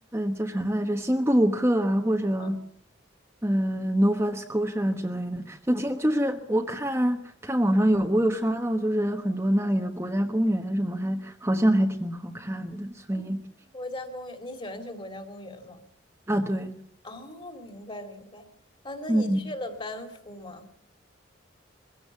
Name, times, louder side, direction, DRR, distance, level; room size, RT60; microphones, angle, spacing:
voice 1, 0.1-2.6 3.4-13.4 16.3-16.8 19.1-19.4, equal, 15° right, 3 dB, 1.2 m, -25 dB
voice 2, 13.7-15.8 17.0-18.5 18.8-20.7, left 1 dB, 25° left, 7 dB, 2.9 m, -39 dB
22.5 x 16.5 x 8.3 m, 0.67 s
head